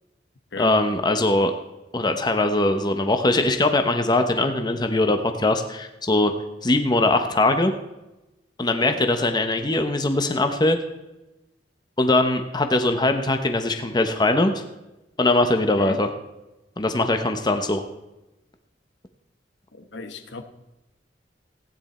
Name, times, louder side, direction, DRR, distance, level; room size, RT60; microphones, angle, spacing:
voice 1, 0.6-1.5 1.9-6.3 6.6-7.7 8.6-10.8 12.0-14.5 15.2-16.1 16.8-17.8, left 2 dB, 25° left, 6 dB, 1.0 m, -21 dB
voice 2, 19.7-20.4, left 3 dB, 80° left, 8 dB, 1.1 m, -36 dB
15.5 x 9.7 x 4.4 m, 0.98 s
head